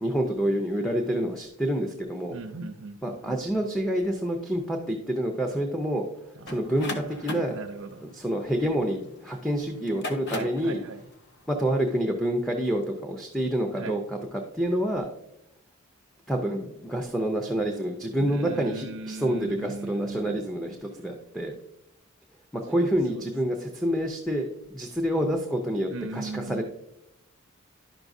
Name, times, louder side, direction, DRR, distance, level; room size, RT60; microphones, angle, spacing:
voice 1, 0.0-2.4 3.0-6.0 6.5-7.6 8.0-10.8 11.5-15.1 16.3-21.6 22.5-26.6, equal, ahead, 2 dB, 0.6 m, -28 dB
voice 2, 2.3-3.4 6.4-6.9 7.5-8.0 10.3-11.0 13.8-14.0 18.2-20.4 23.1-23.3 25.9-26.6, right 3 dB, 70° right, 5 dB, 0.5 m, -38 dB
sound 1, 6.5-9.2 9.8-10.7, left 2 dB, 55° left, 0.9 m, -36 dB
10.5 x 6.0 x 2.6 m, 0.85 s
head